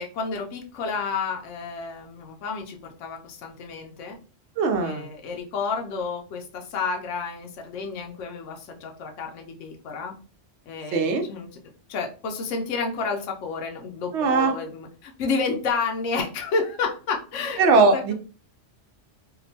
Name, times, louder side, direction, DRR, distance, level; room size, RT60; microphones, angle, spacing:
voice 1, 0.0-4.2 4.8-10.1 10.7-11.5 11.9-18.1, left 4 dB, 85° left, 2 dB, 0.9 m, -30 dB
voice 2, 4.6-5.1 10.9-11.2 14.1-14.5 17.6-18.1, right 4 dB, 70° right, 5 dB, 0.8 m, -20 dB
2.8 x 2.1 x 2.6 m, 0.39 s
omnidirectional pair, 1.2 m